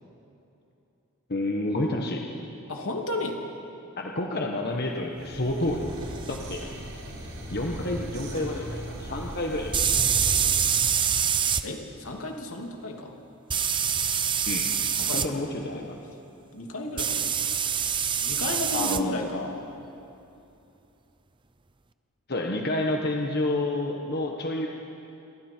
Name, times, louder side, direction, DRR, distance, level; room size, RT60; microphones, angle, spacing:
voice 1, 1.3-2.2 4.0-5.9 6.3-6.7 7.5-9.8 14.5-14.7 15.1-15.5 15.7-16.0 18.7-19.3 22.3-24.7, left 1 dB, 45° left, 1 dB, 1.4 m, -29 dB
voice 2, 2.7-3.4 11.6-13.2 15.0-15.9 16.3-17.5 18.2-19.7, left 2 dB, 80° left, 2 dB, 2.6 m, -34 dB
sound 1, 5.1-10.5, equal, 85° right, 6.1 m, -38 dB
sound 2, 6.3-6.4 9.7-11.6 13.5-15.3 17.0-19.0, right 7 dB, 20° right, 0.6 m, -25 dB
28.0 x 24.0 x 4.6 m, 2.8 s
head